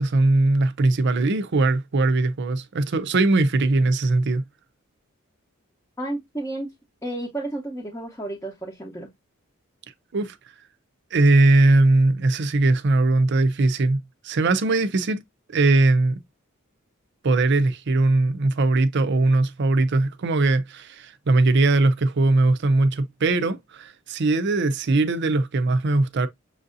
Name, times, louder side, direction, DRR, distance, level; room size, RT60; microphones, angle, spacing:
voice 1, 0.0-4.4 10.1-10.4 11.1-15.2 15.5-16.2 17.2-26.3, right 2 dB, 55° right, 0.5 m, -20 dB
voice 2, 6.0-6.7 7.0-9.1, right 1 dB, 15° left, 0.8 m, -32 dB
6.3 x 2.6 x 2.5 m
head